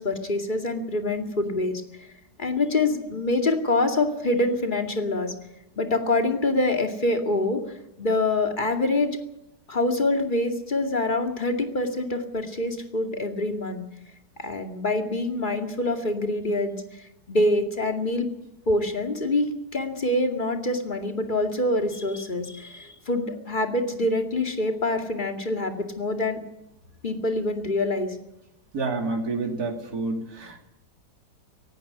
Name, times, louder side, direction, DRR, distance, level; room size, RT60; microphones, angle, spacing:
voice 1, 0.0-2.1 2.4-5.3 5.8-7.6 8.0-9.2 9.7-13.8 14.4-18.3 18.7-26.4 27.0-28.2, left 2 dB, 30° left, 5 dB, 2.5 m, -25 dB
voice 2, 28.7-30.6, right 3 dB, 65° right, 3 dB, 3.1 m, -29 dB
18.0 x 15.5 x 9.5 m, 0.88 s
omnidirectional pair, 1.8 m